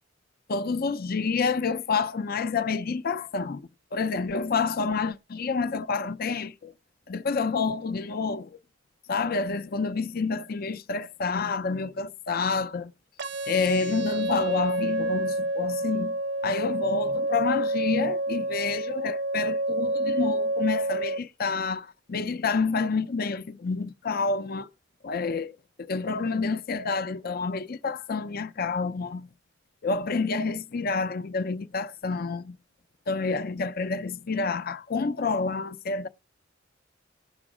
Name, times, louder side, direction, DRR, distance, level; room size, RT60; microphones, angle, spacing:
voice 1, 0.5-3.6 3.9-6.7 7.1-8.6 9.1-12.9 13.5-16.2 16.4-24.7 25.0-29.3 29.8-32.6 33.1-36.1, left 4 dB, 50° left, 0.6 m, -28 dB
sound 1, 13.2-21.2, right 1 dB, 60° right, 0.5 m, -28 dB
18.0 x 6.2 x 4.9 m
head